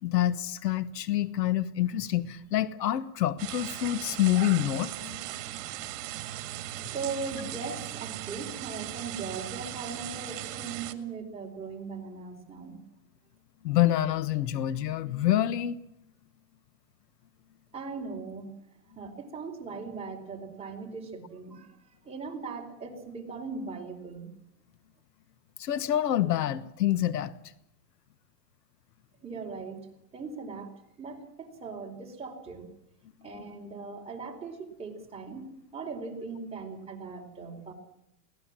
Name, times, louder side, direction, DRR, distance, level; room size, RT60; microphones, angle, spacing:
voice 1, 0.0-5.3 13.6-15.8 25.6-27.3, left 12 dB, 80° left, 15 dB, 1.3 m, -27 dB
sound 1, 3.4-10.9, right 14 dB, 50° right, 2.1 m, -38 dB
voice 2, 6.8-12.8 17.7-18.5 18.9-21.8 22.0-24.3 29.2-29.9 30.1-30.7 31.0-32.6 33.2-37.7, right 4 dB, 10° right, -1 dB, 4.7 m, -39 dB
23.0 x 18.0 x 7.6 m, 0.78 s
supercardioid pair, 140°, 48 cm